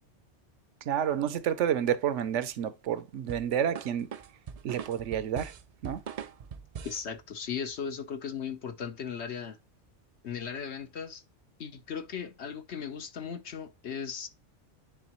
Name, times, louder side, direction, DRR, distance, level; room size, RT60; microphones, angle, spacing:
voice 1, 0.8-4.1 4.6-5.5 5.8-6.0, right 9 dB, 80° right, 1.0 m, -29 dB
sound 1, 3.3-7.1, right 7 dB, 60° right, 0.4 m, -41 dB
voice 2, 6.8-9.6 10.2-11.2 11.6-14.3, left 7 dB, 65° left, 1.2 m, -37 dB
9.9 x 3.7 x 3.0 m
omnidirectional pair, 1.2 m